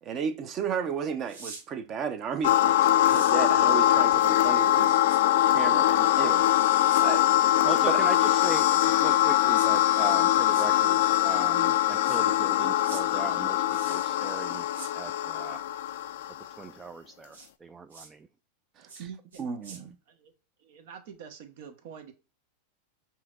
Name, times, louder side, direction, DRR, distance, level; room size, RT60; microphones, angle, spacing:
voice 1, 0.0-5.0 5.5-6.7 7.0-7.3 7.6-8.1 19.4-19.9, right 7 dB, 40° right, 0.8 m, -33 dB
sound 1, 1.2-1.6 3.0-3.4 5.1-5.2 6.9-7.0 7.9-8.6 9.5-9.7 10.5-10.7 12.0-12.2 12.8-13.0 13.7-14.2 14.7-14.9 17.3-17.5 17.9-18.1 18.9-19.0 19.3-19.8, right 4 dB, 85° right, 1.3 m, -44 dB
sound 2, 2.4-16.5, left 12 dB, 70° left, 0.3 m, -23 dB
voice 2, 7.6-14.7 15.0-15.6 16.6-18.3, right 4 dB, 20° right, 0.3 m, -39 dB
voice 3, 18.8-20.3 20.6-22.1, right 7 dB, 65° right, 1.0 m, -46 dB
5.5 x 2.9 x 2.4 m
hypercardioid pair, 105°, 0 cm